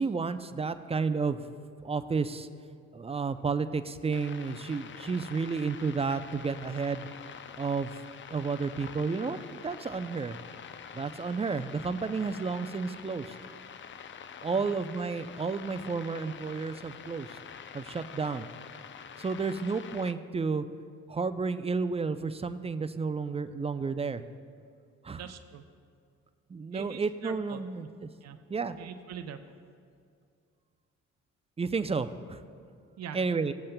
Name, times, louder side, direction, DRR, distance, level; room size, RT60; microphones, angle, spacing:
voice 1, 0.0-1.4 1.8-2.5 2.9-7.1 7.6-7.9 8.3-10.4 10.9-13.3 14.4-17.4 17.7-18.5 19.2-20.7 21.1-24.2 25.0-25.2 26.5-27.9 28.5-28.8 31.6-32.4 33.1-33.5, right 4 dB, 20° right, 11 dB, 0.4 m, -31 dB
sound 1, 4.1-20.1, left 7 dB, 40° left, 0.4 m, -46 dB
voice 2, 25.1-25.7 26.7-27.6 28.2-28.4 28.8-29.4 33.0-33.2, right 8 dB, 60° right, 7 dB, 0.6 m, -43 dB
16.5 x 7.5 x 2.2 m, 2.3 s
supercardioid pair, 65°, 30 cm